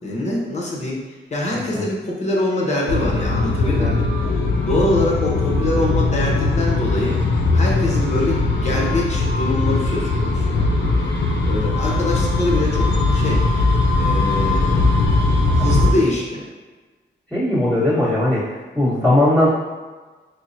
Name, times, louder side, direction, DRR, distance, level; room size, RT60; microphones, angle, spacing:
voice 1, 0.0-1.0 1.3-4.0 4.7-7.2 7.5-10.5 11.4-13.4 14.0-14.8 15.5-16.4, left 1 dB, 35° left, -3 dB, 0.9 m, -24 dB
voice 2, 1.5-1.8 3.6-3.9 17.3-18.4 18.7-19.5, left 1 dB, ahead, -15 dB, 1.4 m, -18 dB
sound 1, 2.9-15.9, left 3 dB, 70° left, 0.6 m, -19 dB
4.4 x 2.1 x 2.6 m, 1.3 s
cardioid pair, 85°, 19 cm